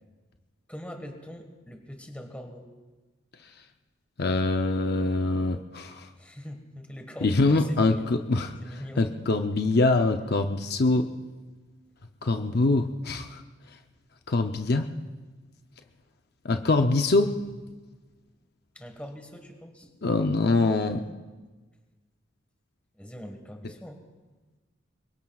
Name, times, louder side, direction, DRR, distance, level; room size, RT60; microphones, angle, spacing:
voice 1, 0.7-2.7 6.1-8.1 8.6-9.1 18.7-19.9 20.9-21.0 23.0-24.0, equal, 5° left, 4 dB, 1.5 m, -42 dB
voice 2, 4.2-6.1 7.2-8.5 9.0-11.1 12.2-13.4 14.3-14.9 16.4-17.3 20.0-21.0, left 2 dB, 55° left, 6 dB, 0.6 m, -24 dB
26.5 x 22.5 x 2.4 m, 1.3 s
head